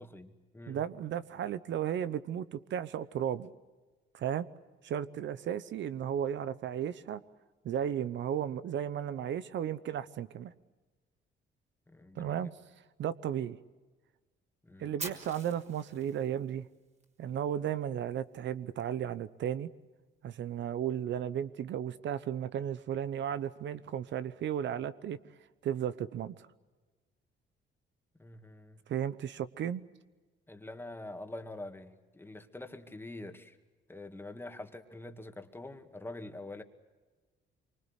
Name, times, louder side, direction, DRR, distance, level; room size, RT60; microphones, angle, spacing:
voice 1, 0.0-0.8 11.9-12.5 14.6-14.9 28.2-28.8 30.5-33.6 33.9-36.6, left 2 dB, 10° left, 6 dB, 2.2 m, -45 dB
voice 2, 0.7-3.5 4.1-4.5 4.8-7.2 7.6-10.5 12.2-12.5 13.0-13.6 14.8-16.7 17.2-19.7 20.2-25.2 25.6-26.3 28.9-29.8, right 9 dB, 70° right, 14 dB, 0.9 m, -34 dB
Fire, 15.0-17.0, right 3 dB, 35° right, 3.9 m, -44 dB
25.0 x 24.5 x 8.2 m, 1.3 s
cardioid pair, 90°, 20 cm